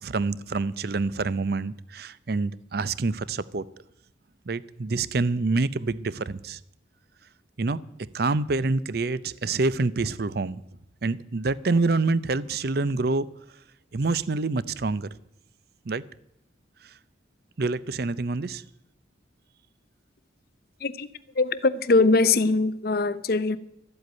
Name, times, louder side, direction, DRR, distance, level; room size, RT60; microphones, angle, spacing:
voice 1, 0.0-3.6 4.5-6.6 7.6-7.8 8.1-10.6 11.0-13.3 13.9-15.1 15.9-16.0 17.6-18.6, right 3 dB, 55° right, 0.6 m, -26 dB
voice 2, 21.4-23.6, left 3 dB, 50° left, 0.6 m, -22 dB
13.5 x 7.9 x 9.4 m
head